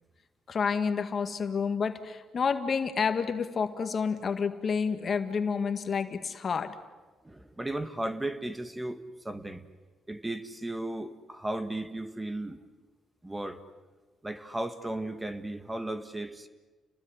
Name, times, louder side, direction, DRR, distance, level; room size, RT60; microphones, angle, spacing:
voice 1, 0.5-6.8, left 5 dB, 45° left, 9 dB, 1.9 m, -29 dB
voice 2, 7.2-9.7 10.1-12.6 13.2-13.6 14.2-16.5, right 1 dB, 15° right, 10 dB, 1.7 m, -35 dB
30.0 x 20.0 x 9.8 m, 1.3 s
cardioid pair, 90°, 0 cm